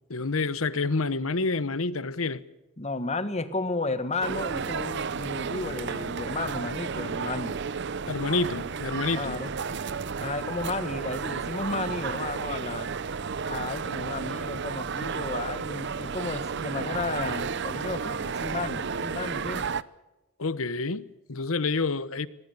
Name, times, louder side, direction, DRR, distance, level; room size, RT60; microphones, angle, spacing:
voice 1, 0.1-2.4 8.1-9.4 20.4-22.3, left 3 dB, 75° left, 1.1 m, -28 dB
voice 2, 2.8-7.5 9.1-9.5 10.2-12.9 13.5-19.7, left 3 dB, 30° left, 1.7 m, -33 dB
sound 1, 4.2-19.8, right 5 dB, 55° right, 0.7 m, -32 dB
25.0 x 19.5 x 6.8 m
head